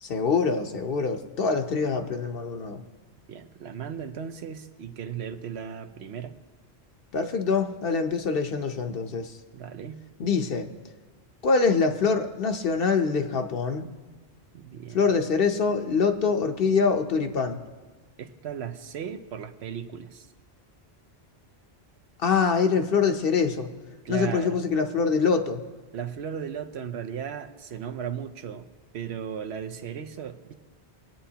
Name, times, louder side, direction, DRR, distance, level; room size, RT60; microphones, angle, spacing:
voice 1, 0.0-2.8 7.1-9.3 10.2-10.7 11.4-13.9 14.9-17.6 22.2-23.7 24.1-25.6, left 5 dB, 60° left, 6 dB, 0.9 m, -24 dB
voice 2, 3.3-6.3 9.5-10.0 14.5-15.0 18.2-20.3 24.0-24.6 25.9-28.7 28.9-30.5, right 8 dB, 75° right, 8 dB, 0.9 m, -36 dB
22.5 x 8.9 x 2.8 m, 1.3 s
omnidirectional pair, 1.1 m